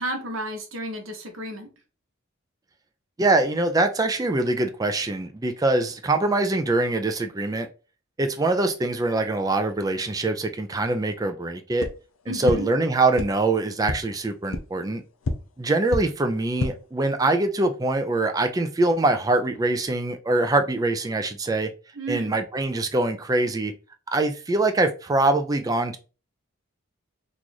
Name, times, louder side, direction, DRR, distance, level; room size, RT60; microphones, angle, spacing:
voice 1, 0.0-1.7 12.3-12.7 21.9-22.3, right 1 dB, 75° right, 0.9 m, -32 dB
voice 2, 3.2-7.7 8.2-11.9 12.3-15.0 15.6-21.7 22.1-23.7 24.1-26.0, right 2 dB, 15° right, 0.3 m, -23 dB
sound 1, 11.8-11.9 12.4-12.5 13.1-13.2 13.8-13.9 14.5-14.6 15.2-15.3 15.9-16.0 16.4-16.7, left 3 dB, 85° left, 0.6 m, -26 dB
3.0 x 2.4 x 3.9 m
head